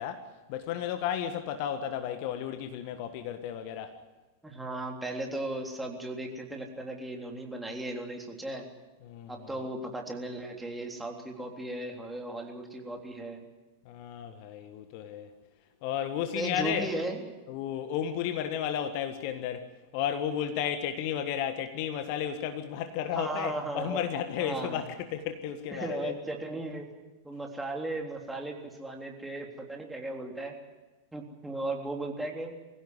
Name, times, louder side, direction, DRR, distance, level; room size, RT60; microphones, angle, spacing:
voice 1, 0.0-4.0 9.0-9.5 13.8-15.3 15.8-16.9 17.5-26.1, left 9 dB, 45° left, 1.6 m, -33 dB
voice 2, 4.4-8.7 9.3-13.4 16.3-17.2 23.1-24.0 24.4-24.8 25.7-26.9 27.2-30.5 31.1-32.5, right 2 dB, 5° right, 3.6 m, -36 dB
24.0 x 16.0 x 9.7 m
figure-of-eight pair, 90°, 0 cm